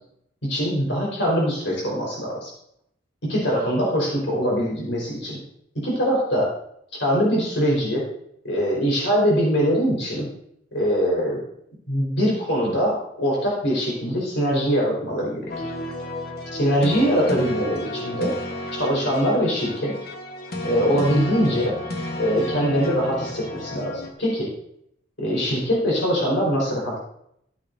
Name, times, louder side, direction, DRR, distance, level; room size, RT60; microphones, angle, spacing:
voice 1, 0.4-2.5 3.3-5.4 5.8-6.5 7.0-8.0 8.4-10.2 10.7-11.4 11.9-15.6 16.5-18.3 18.7-19.9 20.6-21.7 22.2-24.5 25.2-27.0, equal, 80° left, -3 dB, 4.6 m, -22 dB
sound 1, 15.5-24.1, left 1 dB, 55° left, 1.3 m, -32 dB
16.0 x 9.1 x 2.7 m, 0.73 s
head